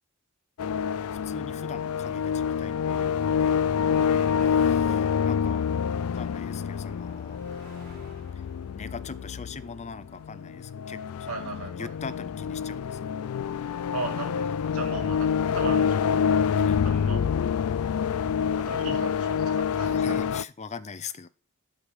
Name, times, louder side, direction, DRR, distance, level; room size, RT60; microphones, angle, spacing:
sound 1, 0.6-20.4, left 7 dB, 85° left, 0.3 m, -27 dB
voice 1, 1.1-3.6 4.0-5.7 6.0-7.4 8.3-8.4 8.7-13.1 16.6-16.8 19.8-21.3, left 5 dB, 35° left, 15 dB, 0.6 m, -42 dB
sound 2, 3.7-19.8, right 1 dB, 50° right, 4.3 m, -61 dB
voice 2, 3.9-4.9 11.3-11.9 13.9-16.1 16.8-17.3 18.6-20.3, right 3 dB, 85° right, 3 dB, 2.6 m, -38 dB
12.0 x 5.1 x 5.3 m, 0.37 s
head